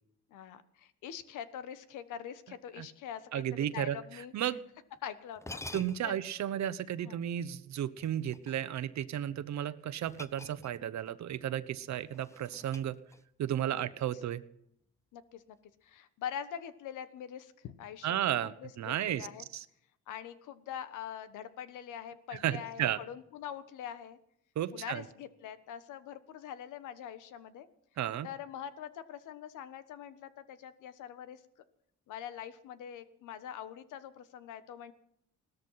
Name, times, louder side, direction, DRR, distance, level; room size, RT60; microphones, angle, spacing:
voice 1, 0.3-4.5 5.0-5.6 6.0-6.1 7.0-7.2 13.7-13.8 15.1-15.6 15.8-19.4 20.1-24.2 24.7-27.7 28.2-31.4 32.1-34.9, left 9 dB, 85° left, 13 dB, 1.3 m, -44 dB
voice 2, 3.3-4.0 4.3-4.6 5.7-13.0 13.4-14.4 18.0-19.3 19.5-19.6 22.4-23.0 24.6-25.0 28.0-28.3, right 11 dB, 65° right, 14 dB, 1.1 m, -33 dB
sound 1, 5.0-5.1 5.4-6.3 8.0-8.9 10.1-11.0 11.3-11.5 12.0-13.4, left 2 dB, 10° left, 0.9 m, -48 dB
17.5 x 13.5 x 5.8 m, 0.74 s
cardioid pair, 90°, 30 cm